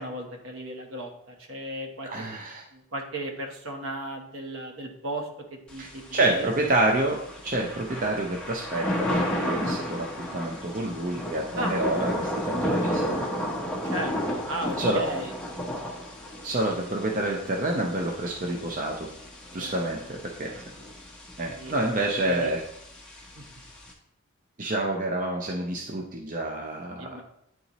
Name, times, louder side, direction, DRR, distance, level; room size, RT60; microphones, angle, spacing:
voice 1, 0.0-2.1 2.7-5.3 5.7-6.5 11.6-11.8 13.9-15.3 15.8-16.0 19.6-19.7 20.4-20.6 21.6-21.7 22.3-22.5 23.4-23.5 27.0-27.2, right 1 dB, 65° right, 3 dB, 1.1 m, -35 dB
voice 2, 2.0-2.6 5.8-13.1 14.8-15.0 16.4-19.1 19.5-20.6 21.4-22.6 24.6-27.2, right 2 dB, 35° right, 0 dB, 0.5 m, -28 dB
Thunder / Rain, 5.7-23.9, equal, 5° left, 0.9 m, -33 dB
9.1 x 4.0 x 3.0 m, 0.78 s
head